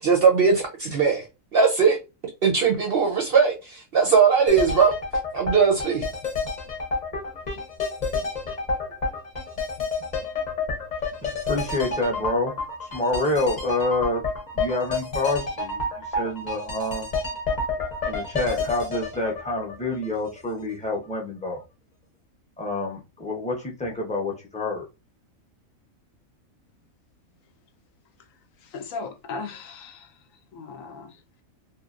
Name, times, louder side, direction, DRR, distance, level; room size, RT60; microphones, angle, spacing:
voice 1, 0.0-1.2 1.5-2.0 2.4-4.9 5.3-6.0, right 5 dB, 60° right, 0.7 m, -19 dB
sound 1, 4.5-20.4 20.7-20.8, left 3 dB, 35° left, 0.8 m, -29 dB
voice 2, 11.2-12.5 12.8-14.2 14.5-15.8 16.2-17.1 18.0-21.6 22.6-24.8, left 2 dB, 5° left, 0.6 m, -27 dB
voice 3, 28.6-30.2 30.5-31.2, left 4 dB, 75° left, 1.0 m, -37 dB
2.9 x 2.5 x 2.5 m
omnidirectional pair, 1.4 m